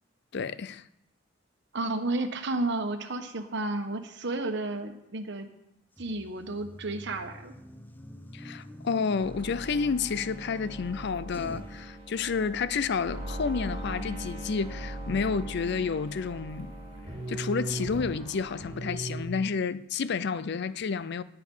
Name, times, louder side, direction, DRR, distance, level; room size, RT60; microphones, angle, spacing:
voice 1, 0.3-0.8 8.3-16.7 17.3-21.2, left 5 dB, 60° left, 0.5 m, -30 dB
voice 2, 1.7-5.5 6.0-7.5, right 2 dB, 65° right, 1.2 m, -32 dB
sound 1, 6.0-11.8, equal, 10° left, 0.8 m, -46 dB
sound 2, 9.2-19.2, right 1 dB, 30° right, 3.5 m, -39 dB
18.5 x 6.9 x 5.5 m
head